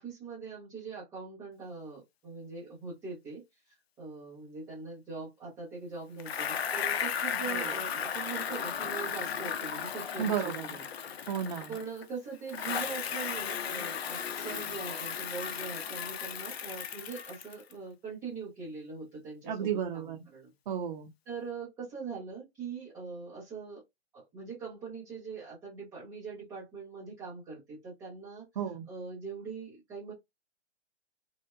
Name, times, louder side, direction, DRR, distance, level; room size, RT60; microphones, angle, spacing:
voice 1, 0.0-10.8 11.7-20.5 21.3-23.8 24.1-28.5 28.9-30.1, right 4 dB, 5° right, 0.3 m, -42 dB
Bicycle, 6.2-12.1 12.5-17.7, left 7 dB, 65° left, 0.6 m, -35 dB
voice 2, 10.2-10.7 11.3-11.7 19.5-20.2 20.7-21.1 28.6-28.9, right 8 dB, 45° right, 0.6 m, -33 dB
3.0 x 2.0 x 2.2 m
figure-of-eight pair, 130°, 33 cm